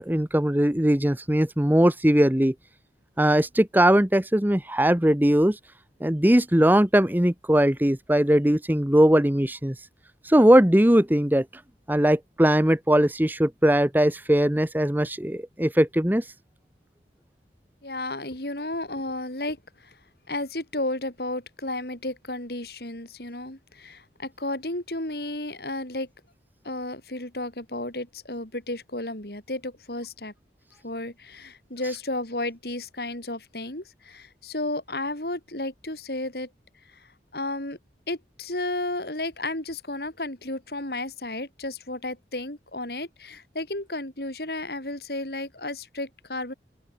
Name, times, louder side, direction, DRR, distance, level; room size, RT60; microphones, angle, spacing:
voice 1, 0.0-2.5 3.2-5.6 6.0-9.7 10.2-11.4 11.9-16.2, right 1 dB, 10° right, 1.0 m, -20 dB
voice 2, 17.8-20.0 20.3-26.1 26.6-30.3 30.8-36.5 36.9-37.8 38.1-46.5, left 2 dB, 60° left, 4.6 m, -33 dB
open air
head